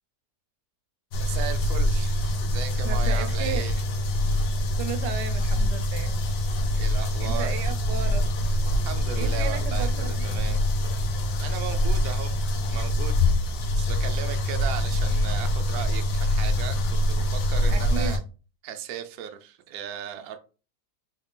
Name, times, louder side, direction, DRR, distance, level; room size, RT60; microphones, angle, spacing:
sound 1, 1.1-18.2, left 1 dB, 90° left, 1.3 m, -24 dB
voice 1, 1.1-3.8 6.7-7.5 8.8-10.6 11.4-12.4 12.7-13.2 13.8-18.2 18.6-20.4, right 10 dB, 70° right, 7 dB, 0.9 m, -36 dB
voice 2, 2.8-3.7 4.8-6.2 7.2-8.2 9.2-10.3 17.7-18.2, right 8 dB, 90° right, 9 dB, 1.2 m, -34 dB
3.9 x 2.4 x 3.6 m, 0.35 s
omnidirectional pair, 1.8 m